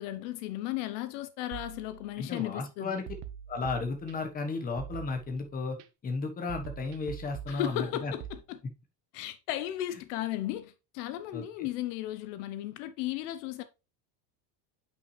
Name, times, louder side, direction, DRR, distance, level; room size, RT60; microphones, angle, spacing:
voice 1, 0.0-3.0 7.5-8.6 9.1-13.6, left 13 dB, 70° left, 0.9 m, -35 dB
sound 1, 1.5-2.4 3.1-4.4 4.8-5.8 6.5-8.4, right 10 dB, 65° right, 1.0 m, -44 dB
voice 2, 2.2-3.0 3.5-5.8 6.0-8.1 9.9-10.0 11.3-11.7, left 4 dB, 15° left, 1.2 m, -34 dB
8.3 x 5.7 x 3.2 m
cardioid pair, 160°, 49 cm